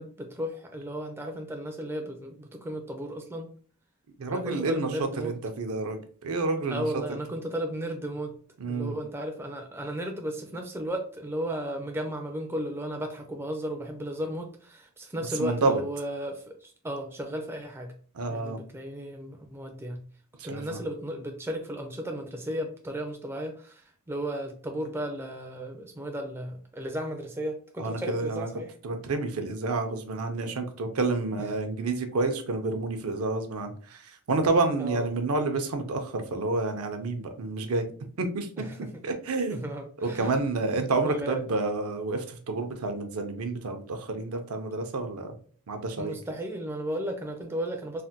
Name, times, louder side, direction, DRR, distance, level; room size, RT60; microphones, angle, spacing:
voice 1, 0.0-3.5 4.3-5.3 6.7-8.4 8.7-17.9 18.3-20.0 20.4-28.7 31.4-31.5 34.8-35.1 38.6-39.0 39.5-40.3 41.0-41.4 46.0-48.0, equal, 10° right, 3 dB, 0.4 m, -34 dB
voice 2, 4.2-4.9 5.2-6.9 8.6-8.9 15.4-15.8 18.1-18.6 20.5-20.8 27.8-28.5 28.8-37.9 38.2-38.5 39.0-39.6 40.0-45.3 45.7-46.2, right 3 dB, 70° right, 6 dB, 0.5 m, -29 dB
3.2 x 2.1 x 2.7 m, 0.43 s
head